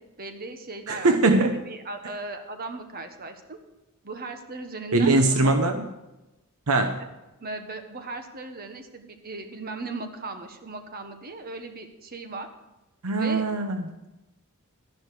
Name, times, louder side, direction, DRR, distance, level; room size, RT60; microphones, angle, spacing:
voice 1, 0.2-3.6 4.0-5.5 7.4-12.5 13.1-13.4, right 3 dB, 45° right, 6 dB, 1.3 m, -37 dB
voice 2, 0.9-1.5 4.9-5.8 6.7-7.0 13.0-14.1, right 2 dB, 75° right, 7 dB, 0.8 m, -21 dB
13.0 x 11.0 x 4.8 m, 0.98 s
head